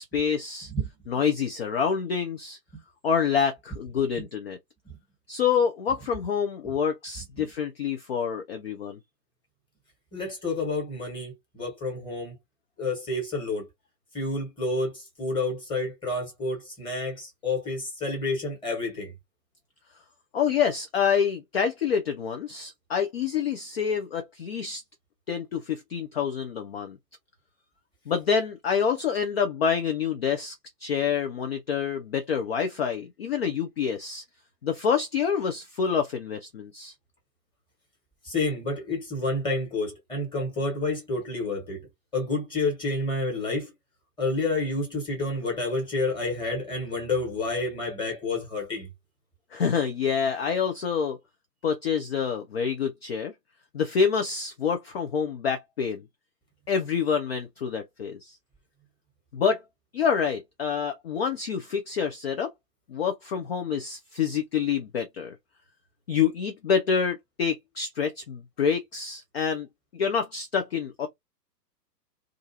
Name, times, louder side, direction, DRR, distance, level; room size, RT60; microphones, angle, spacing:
voice 1, 0.0-0.7 1.1-2.6 3.0-4.6 5.3-9.0 20.3-24.8 25.3-27.0 28.1-30.5 30.8-34.2 34.6-36.9 49.5-51.2 51.6-53.3 53.7-56.0 56.7-58.4 59.3-59.6 59.9-62.5 62.9-65.4 66.1-69.7 69.9-71.1, left 7 dB, 40° left, 0.4 m, -27 dB
voice 2, 10.1-12.4 12.8-13.7 14.1-19.1 38.2-41.8 42.1-43.7 44.2-48.9, left 2 dB, 10° left, 1.3 m, -29 dB
2.4 x 2.4 x 2.7 m
figure-of-eight pair, 120°, 49 cm